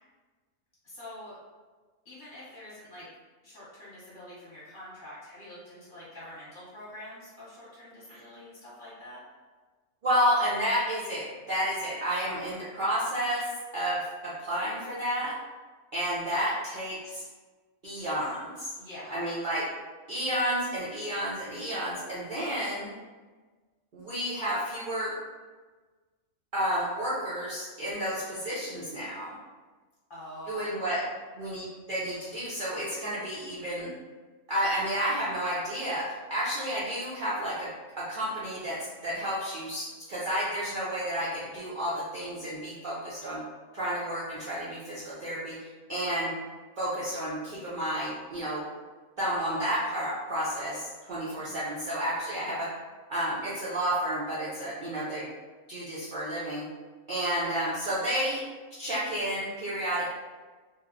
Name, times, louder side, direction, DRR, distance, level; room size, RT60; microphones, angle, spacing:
voice 1, 0.8-1.4 2.0-3.1 3.4-9.2 18.8-19.2 30.1-31.0 51.3-51.7, left 1 dB, 40° left, -9 dB, 0.9 m, -46 dB
voice 2, 10.0-15.3 15.9-17.2 17.8-18.7 19.1-19.7 20.1-22.9 23.9-25.1 26.5-29.4 30.5-31.0 31.3-33.9 34.5-37.7 38.0-43.4 43.7-46.3 46.8-48.6 49.2-52.8 53.1-55.3 55.7-56.6 57.1-58.4 58.8-60.1, equal, 90° right, -9 dB, 0.4 m, -31 dB
2.9 x 2.0 x 2.4 m, 1.3 s
omnidirectional pair, 1.6 m